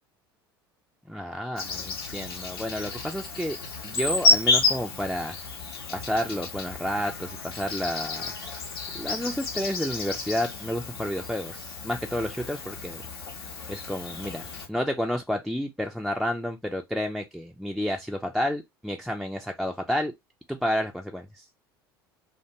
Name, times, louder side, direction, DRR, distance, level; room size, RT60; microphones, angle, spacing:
voice 1, 1.1-3.6 3.8-5.4 5.9-13.0 13.7-20.1 20.5-21.4, equal, ahead, 0.4 m, -30 dB
Insect, 1.6-14.7, left 3 dB, 75° left, 0.8 m, -30 dB
2.5 x 2.2 x 2.8 m
figure-of-eight pair, 70°, 13 cm